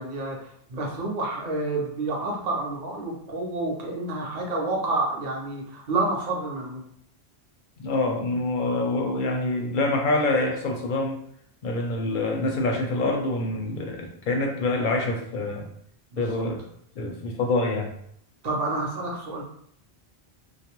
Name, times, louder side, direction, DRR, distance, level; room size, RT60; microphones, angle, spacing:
voice 1, 0.0-6.8 16.1-16.4 18.4-19.5, right 2 dB, 45° right, -1 dB, 0.6 m, -29 dB
voice 2, 7.8-11.2 11.6-15.7 16.2-16.6 17.0-17.9, left 2 dB, 60° left, 2 dB, 0.6 m, -26 dB
2.3 x 2.1 x 2.9 m, 0.67 s
omnidirectional pair, 1.1 m